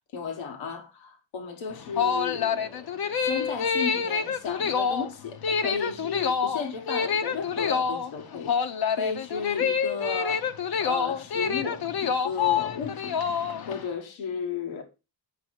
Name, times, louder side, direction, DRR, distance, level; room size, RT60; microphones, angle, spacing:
voice 1, 0.1-2.9 3.2-13.2 13.7-14.8, left 5 dB, 85° left, 1.4 m, -34 dB
sound 1, 1.7-13.8, left 6 dB, 55° left, 0.9 m, -27 dB
8.1 x 5.4 x 4.5 m
cardioid pair, 65°, 45 cm